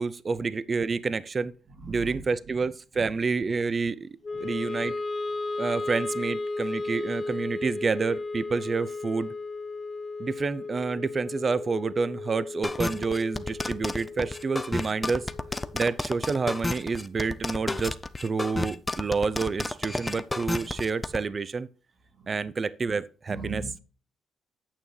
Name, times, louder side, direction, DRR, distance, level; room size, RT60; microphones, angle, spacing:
voice 1, 0.0-1.5 1.9-4.1 4.4-4.9 5.6-9.3 10.2-15.2 15.7-18.0 18.2-21.7 22.3-23.6, right 4 dB, 35° right, 0.5 m, -28 dB
voice 2, 1.8-2.1 3.0-3.1 22.2-22.5 23.3-23.8, right 3 dB, 55° right, 3.1 m, -39 dB
Wind instrument woodwind instrument, 4.2-16.5, left 3 dB, 35° left, 0.9 m, -35 dB
sound 1, 12.6-21.2, left 2 dB, 15° left, 0.6 m, -31 dB
8.7 x 7.0 x 3.2 m
cardioid pair, 90°, 0 cm